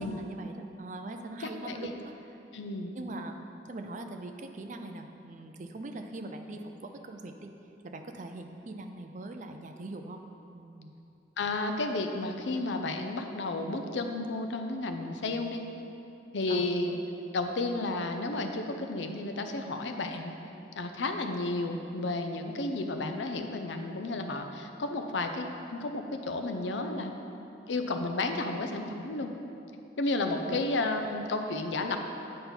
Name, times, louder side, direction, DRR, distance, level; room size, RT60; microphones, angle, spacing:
voice 1, 0.0-2.1 2.9-3.3 3.6-7.5 7.8-10.2 10.5-10.9 16.5-16.6 30.4-30.6, right 2 dB, 40° right, 5 dB, 0.5 m, -41 dB
voice 2, 1.4-1.9 2.5-2.9 11.4-15.6 16.3-17.0 17.3-20.3 20.7-27.1 27.7-29.3 30.0-32.0, left 2 dB, 80° left, 5 dB, 0.6 m, -32 dB
8.6 x 5.4 x 4.4 m, 2.8 s
head